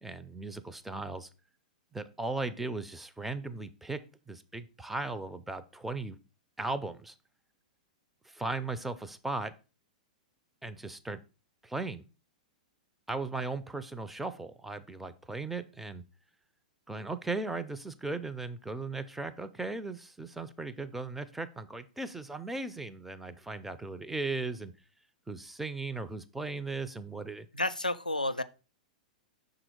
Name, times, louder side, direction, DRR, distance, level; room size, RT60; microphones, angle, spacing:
voice 1, 0.0-1.3 1.9-4.0 4.3-6.2 6.6-7.1 8.2-9.5 10.6-11.2 11.6-12.0 13.1-16.0 16.9-24.7 25.3-27.5, right 3 dB, 5° right, 0.4 m, -37 dB
voice 2, 27.5-28.4, left 2 dB, 85° left, 0.4 m, -30 dB
6.0 x 3.9 x 4.7 m
figure-of-eight pair, 100°, 4 cm